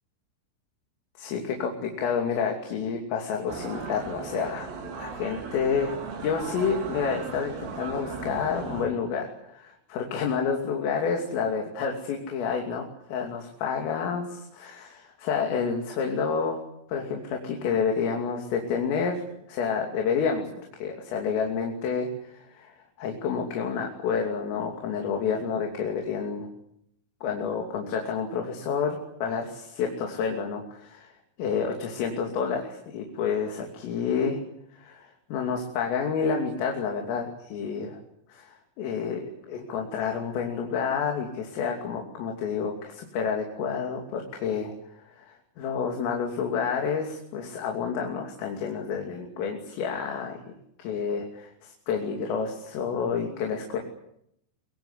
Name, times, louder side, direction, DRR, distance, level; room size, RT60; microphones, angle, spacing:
voice 1, 1.2-4.7 5.0-6.0 6.2-16.6 16.9-19.2 19.5-26.5 27.2-31.1 31.4-34.4 34.7-38.0 38.3-44.7 45.1-50.4 50.8-53.8, left 6 dB, 80° left, 1 dB, 5.4 m, -29 dB
sound 1, 3.5-8.9, right 5 dB, 80° right, 6.7 m, -37 dB
23.5 x 23.5 x 8.3 m, 0.75 s
omnidirectional pair, 5.9 m